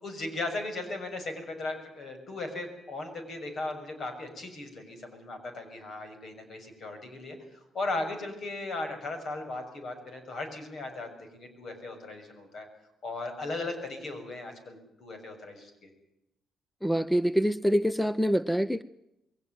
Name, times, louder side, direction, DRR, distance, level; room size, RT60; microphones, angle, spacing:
voice 1, 0.0-7.4 7.7-12.7 13.0-15.9, left 2 dB, 55° left, 7 dB, 6.6 m, -37 dB
voice 2, 16.8-18.8, equal, ahead, 16 dB, 0.7 m, -25 dB
22.0 x 17.0 x 9.5 m, 0.85 s
cardioid pair, 90°, 0 cm